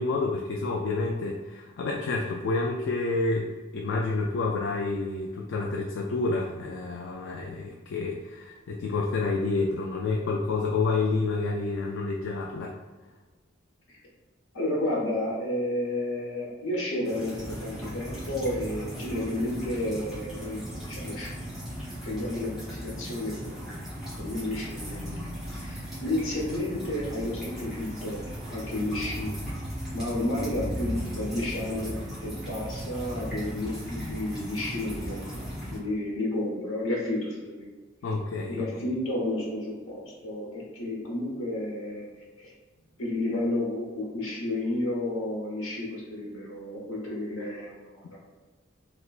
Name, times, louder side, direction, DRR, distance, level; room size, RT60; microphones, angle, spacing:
voice 1, 0.0-12.8 38.0-38.7, left 3 dB, 65° left, 0 dB, 0.3 m, -29 dB
voice 2, 14.5-21.3 22.0-28.2 28.5-29.3 29.9-35.5 35.7-37.7 38.5-42.1 42.4-42.5 43.0-48.4, left 1 dB, 80° left, -3 dB, 1.0 m, -32 dB
sound 1, 17.0-35.8, equal, ahead, 1.1 m, -37 dB
3.2 x 2.8 x 2.4 m, 1.3 s
head